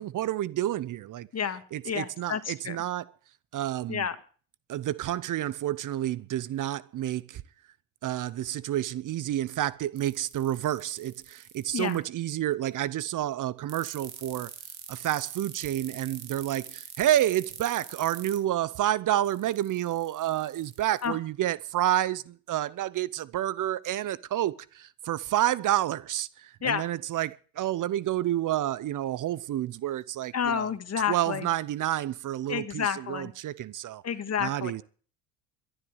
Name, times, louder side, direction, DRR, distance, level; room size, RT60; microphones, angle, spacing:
voice 1, 0.0-1.3 1.7-3.1 3.5-4.1 4.7-7.4 8.0-14.5 14.9-30.7 31.1-34.0 34.4-34.8, right 13 dB, 50° right, 0.8 m, -29 dB
voice 2, 1.9-2.8 3.9-4.1 11.7-12.0 21.0-21.1 26.6-26.8 30.3-31.4 32.5-33.3 34.0-34.7, left 7 dB, 40° left, 1.9 m, -30 dB
sound 1, 10.0-12.0 13.7-18.4 19.3-21.1, right 11 dB, 80° right, 2.5 m, -44 dB
12.0 x 11.0 x 8.0 m
hypercardioid pair, 70°, 40 cm